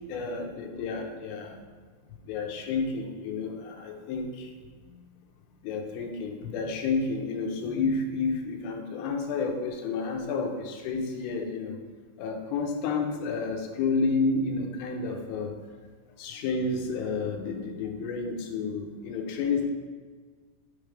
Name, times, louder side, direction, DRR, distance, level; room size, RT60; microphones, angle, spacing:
voice 1, 0.0-1.6 2.3-4.5 4.9-5.0 5.6-11.8 12.2-15.6 16.2-19.7, left 4 dB, 85° left, 3 dB, 2.6 m, -30 dB
9.2 x 3.3 x 5.0 m, 1.5 s
omnidirectional pair, 4.4 m